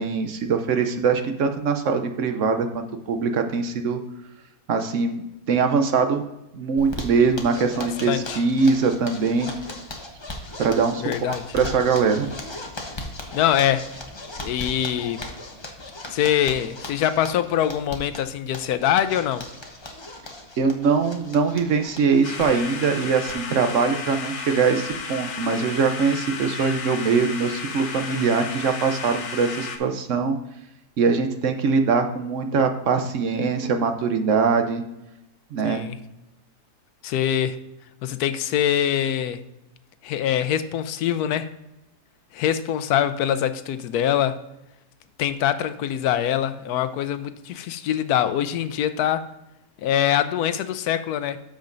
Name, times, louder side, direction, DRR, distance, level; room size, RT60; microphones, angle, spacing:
voice 1, 0.0-4.0 4.7-5.2 5.5-6.2 6.5-9.5 10.6-11.0 11.3-12.3 20.6-30.4 31.0-34.8 35.5-35.8, right 5 dB, 60° right, 6 dB, 0.9 m, -22 dB
Zipper (clothing), 6.8-25.0 25.3-25.4 25.7-25.8 26.1-26.5, left 2 dB, 25° left, 0.7 m, -38 dB
voice 2, 8.0-8.4 11.0-11.4 13.3-13.9 14.4-15.2 16.1-19.4 35.6-36.0 37.0-37.6 38.0-39.4 40.0-41.5 42.3-44.4 45.2-49.3 49.8-51.4, left 10 dB, 85° left, 12 dB, 1.1 m, -23 dB
sound 1, 22.2-29.8, left 5 dB, 65° left, 1.2 m, -33 dB
13.0 x 5.1 x 2.6 m, 0.94 s
omnidirectional pair, 1.6 m